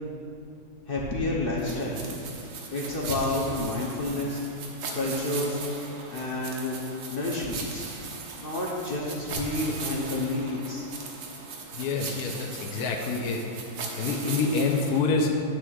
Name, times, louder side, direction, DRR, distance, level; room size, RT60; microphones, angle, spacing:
voice 1, 0.9-2.0 2.7-4.4 4.9-5.6 6.1-6.8 7.1-7.9 8.4-10.8, left 2 dB, 45° left, -3 dB, 0.8 m, -29 dB
sound 1, 1.6-15.0, right 4 dB, 75° right, 1.5 m, -39 dB
voice 2, 11.8-12.3 12.6-13.4 14.0-15.3, left 4 dB, 65° left, 1 dB, 1.1 m, -26 dB
9.9 x 3.4 x 6.2 m, 2.5 s
omnidirectional pair, 1.9 m